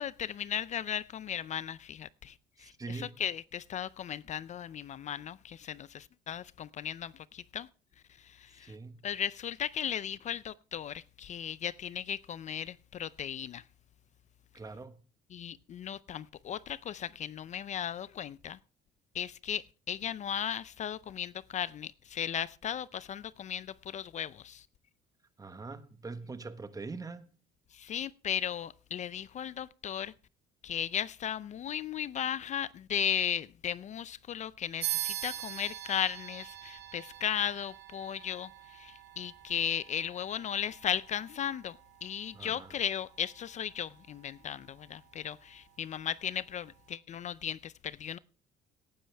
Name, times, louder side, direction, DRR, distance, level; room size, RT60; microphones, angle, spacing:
voice 1, 0.0-7.7 8.2-8.7 9.0-13.6 15.3-18.6 19.1-24.7 27.7-30.1 30.6-48.2, left 9 dB, 45° left, 0.5 m, -36 dB
voice 2, 2.6-3.1 8.6-9.0 14.5-15.0 25.4-27.3 42.3-42.7, right 3 dB, 20° right, 1.3 m, -43 dB
sound 1, 34.8-44.8, right 14 dB, 85° right, 2.4 m, -43 dB
18.0 x 10.0 x 3.4 m
cardioid pair, 110°, 17 cm